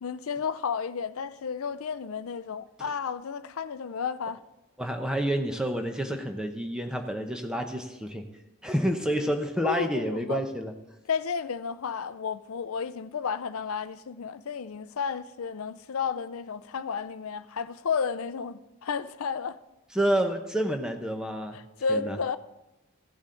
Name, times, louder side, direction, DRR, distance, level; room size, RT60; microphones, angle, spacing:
voice 1, 0.0-4.4 9.6-10.4 11.1-19.6 21.5-22.4, left 6 dB, 70° left, 0.5 m, -32 dB
voice 2, 4.8-8.3 8.6-10.7 19.9-21.6 21.9-22.2, equal, 5° right, 0.8 m, -29 dB
15.0 x 8.2 x 3.8 m
head